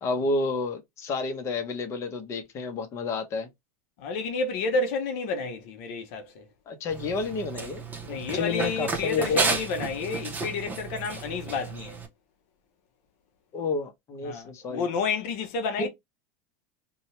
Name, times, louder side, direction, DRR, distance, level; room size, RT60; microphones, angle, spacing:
voice 1, 0.0-3.5 6.7-9.5 13.5-14.9 15.8-15.9, left 3 dB, 35° left, 0.9 m, -30 dB
voice 2, 4.0-6.4 8.1-12.0 14.2-15.9, left 4 dB, 65° left, 0.8 m, -30 dB
Run, 6.9-12.1, right 4 dB, 20° right, 0.9 m, -32 dB
2.7 x 2.4 x 3.1 m
supercardioid pair, 120°, 8 cm